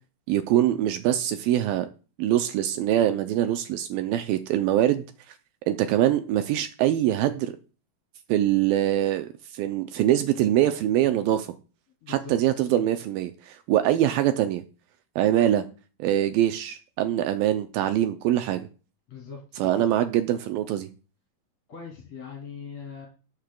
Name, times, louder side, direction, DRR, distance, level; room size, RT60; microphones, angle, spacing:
voice 1, 0.3-1.9 2.2-5.4 5.7-7.5 8.3-11.5 12.1-14.6 15.2-15.6 16.0-18.6 19.6-20.9, right 12 dB, 80° right, 2.2 m, -23 dB
voice 2, 12.0-12.7 19.1-19.9 21.7-23.1, left 6 dB, 45° left, 3.5 m, -41 dB
19.0 x 6.6 x 2.3 m
omnidirectional pair, 4.3 m